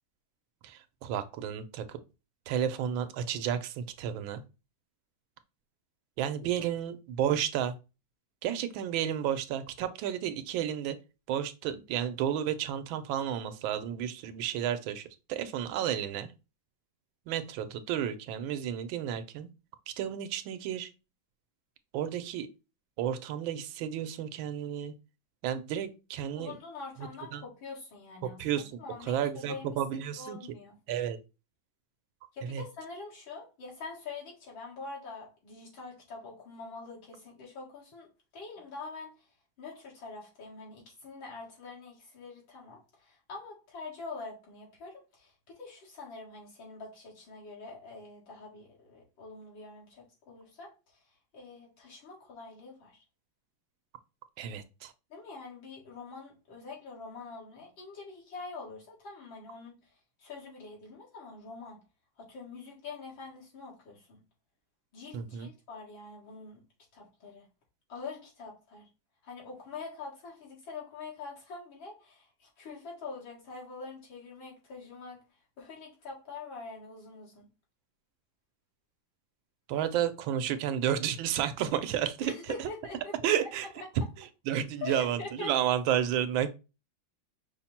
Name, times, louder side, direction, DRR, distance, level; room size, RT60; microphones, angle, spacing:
voice 1, 0.6-2.0 2.5-4.4 6.2-7.8 8.4-11.0 11.3-16.3 17.3-19.5 19.9-20.9 21.9-22.5 23.0-24.9 25.4-26.6 27.3-27.4 28.4-28.8 29.1-30.4 30.9-31.2 32.5-32.6 54.4-54.9 65.1-65.5 79.7-82.3 82.6-82.7 83.2-83.7 84.5-86.5, right 10 dB, 85° right, 1.4 m, -32 dB
voice 2, 26.4-30.8 32.3-39.3 39.6-53.0 55.1-59.9 60.2-61.8 62.2-64.2 64.9-66.6 66.9-67.5 67.9-68.9 69.2-75.2 75.6-77.5 82.2-83.5 83.8-83.9 84.8-85.6, left 4 dB, 80° left, 2.5 m, -45 dB
5.6 x 2.1 x 4.2 m
omnidirectional pair, 2.1 m